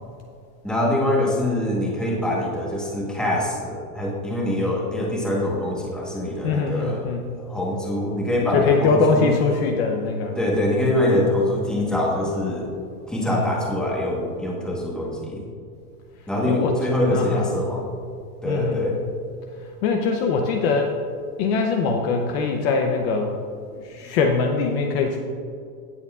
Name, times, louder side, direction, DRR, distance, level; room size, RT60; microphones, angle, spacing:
voice 1, 0.6-7.1 7.5-9.3 10.3-12.7 13.1-15.4 16.3-17.9 18.4-19.0, left 1 dB, ahead, -4 dB, 1.2 m, -24 dB
voice 2, 6.4-7.3 8.5-10.4 13.3-13.5 16.5-16.8 17.1-17.5 18.4-19.0 19.6-21.0 21.4-23.4 23.7-25.2, left 4 dB, 40° left, 3 dB, 0.7 m, -22 dB
17.0 x 6.7 x 2.4 m, 2.5 s
supercardioid pair, 155°, 46 cm